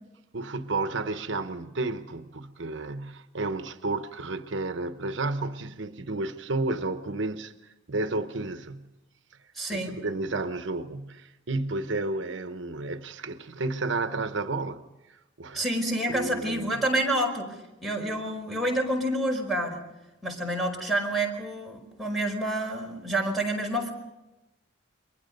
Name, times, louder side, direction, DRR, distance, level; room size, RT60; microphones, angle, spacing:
voice 1, 0.3-8.9 9.7-15.6 16.1-16.8, right 2 dB, 70° right, 1.0 m, -32 dB
voice 2, 9.5-10.0 15.5-19.8 20.2-23.9, right 1 dB, ahead, 5.1 m, -28 dB
29.5 x 23.5 x 5.4 m
head